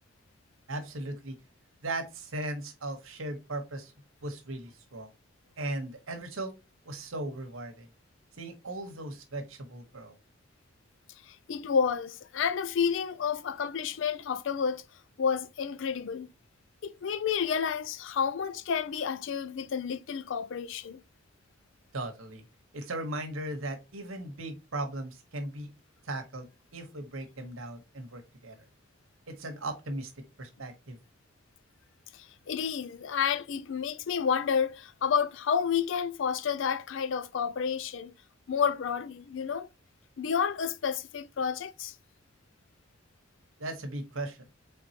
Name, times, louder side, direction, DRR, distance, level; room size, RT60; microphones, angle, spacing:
voice 1, 0.7-1.4 1.8-3.9 4.2-5.1 5.6-6.5 6.8-7.9 8.4-10.2 21.9-22.4 22.7-25.7 26.0-28.6 29.3-31.0 43.6-44.5, right 1 dB, 85° right, 1.1 m, -37 dB
voice 2, 11.3-14.8 15.2-16.3 16.8-21.0 32.1-38.1 38.5-39.7 40.2-41.9, left 7 dB, 70° left, 0.4 m, -30 dB
4.5 x 3.6 x 2.8 m
head